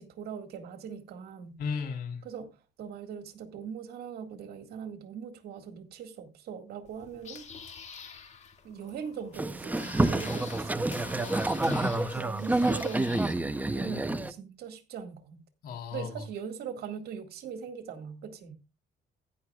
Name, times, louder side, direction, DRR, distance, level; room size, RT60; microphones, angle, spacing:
voice 1, 0.0-1.5 2.2-7.4 8.6-11.5 12.1-15.4 15.9-18.5, right 7 dB, 70° right, 2.1 m, -41 dB
voice 2, 1.6-2.2 11.7-12.2 13.9-14.1 15.6-16.2, left 5 dB, 65° left, 3.8 m, -35 dB
sound 1, 6.8-13.3, left 6 dB, 45° left, 2.1 m, -47 dB
Boat Water vehicle, 9.3-14.3, right 2 dB, 10° right, 0.7 m, -28 dB
15.0 x 10.5 x 2.4 m
cardioid pair, 110°, 17 cm